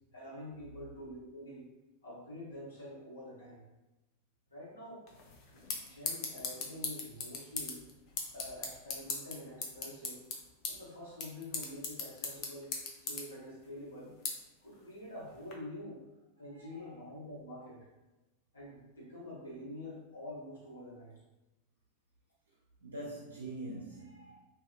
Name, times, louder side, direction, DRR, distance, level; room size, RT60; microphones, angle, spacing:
voice 1, 0.1-1.6 2.0-3.6 4.5-5.0 5.5-7.8 8.3-10.2 10.7-14.1 14.6-16.0 16.4-17.9 18.5-21.1, left 1 dB, 75° left, -7 dB, 1.2 m, -47 dB
sound 1, 5.1-15.5, left 4 dB, 40° left, 0.5 m, -41 dB
voice 2, 16.4-17.1 22.5-24.3, right 1 dB, 70° right, -4 dB, 0.5 m, -45 dB
2.6 x 2.6 x 2.3 m, 1.0 s
figure-of-eight pair, 90°, 0 cm